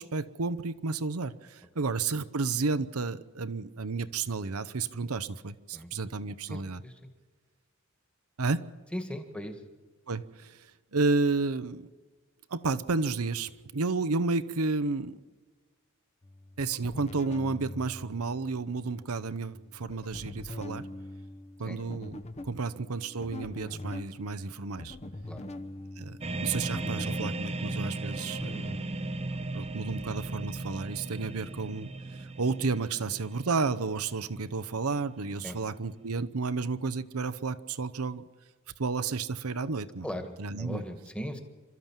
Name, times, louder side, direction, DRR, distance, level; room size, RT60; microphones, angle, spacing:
voice 1, 0.0-6.8 8.4-8.7 10.1-11.9 12.5-15.2 16.6-20.9 21.6-25.0 26.0-28.7 29.5-31.9 32.2-38.2 38.8-40.1 40.4-40.8, right 4 dB, 85° right, 12 dB, 0.8 m, -32 dB
voice 2, 6.5-6.9 8.9-9.5 21.6-21.8 25.3-25.4 35.4-35.6 40.0-40.3 40.6-41.4, equal, 5° left, 5 dB, 1.8 m, -38 dB
sound 1, 16.2-28.8, left 1 dB, 30° left, 1.0 m, -44 dB
sound 2, 26.2-36.2, right 2 dB, 30° right, 0.8 m, -37 dB
27.0 x 14.0 x 7.4 m, 1.4 s
head